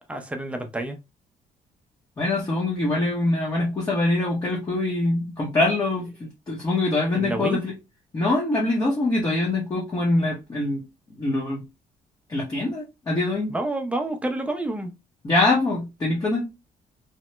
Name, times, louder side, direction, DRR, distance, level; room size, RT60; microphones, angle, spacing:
voice 1, 0.1-1.0 7.1-7.6 13.5-14.9, right 2 dB, 10° right, 0.4 m, -28 dB
voice 2, 2.2-7.7 8.1-10.8 11.1-11.6 12.3-13.5 15.2-16.5, left 2 dB, 25° left, 0.7 m, -24 dB
2.8 x 2.0 x 3.2 m
cardioid pair, 145°, 15 cm